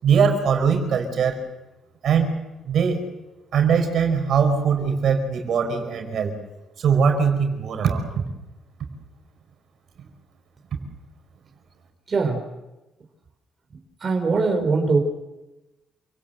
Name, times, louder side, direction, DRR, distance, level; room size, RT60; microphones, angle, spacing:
voice 1, 0.0-1.4 2.0-2.4 2.6-3.0 3.5-6.3 6.8-8.2, right 6 dB, 65° right, 5 dB, 5.1 m, -21 dB
voice 2, 12.1-12.4 13.7-15.0, right 4 dB, 40° right, 3 dB, 4.4 m, -22 dB
28.5 x 17.5 x 7.9 m, 1.0 s
cardioid pair, 90°, 0 cm